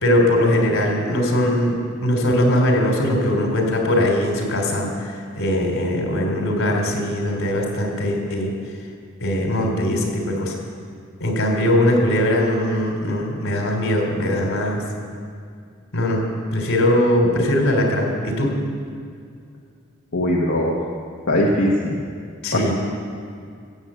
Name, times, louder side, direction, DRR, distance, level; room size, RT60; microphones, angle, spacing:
voice 1, 0.0-8.5 9.2-10.6 11.2-14.8 15.9-16.2 16.5-18.5 22.4-22.7, left 1 dB, 90° left, 1 dB, 3.0 m, -20 dB
voice 2, 20.1-20.7 21.3-22.0 22.5-22.7, left 1 dB, 70° left, -3 dB, 1.3 m, -20 dB
16.0 x 7.8 x 7.8 m, 2.3 s
head